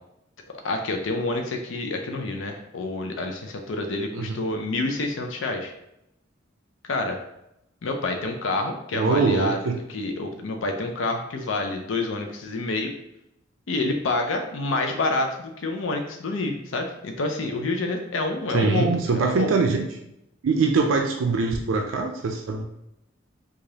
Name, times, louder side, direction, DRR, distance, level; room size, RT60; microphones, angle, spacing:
voice 1, 0.6-5.7 6.9-7.2 7.8-9.6 9.9-12.9 13.7-19.5, left 2 dB, 70° left, 3 dB, 0.5 m, -28 dB
voice 2, 8.9-9.8 18.5-19.9 20.4-22.6, right 4 dB, 80° right, 3 dB, 0.4 m, -23 dB
4.8 x 2.4 x 2.7 m, 0.84 s
head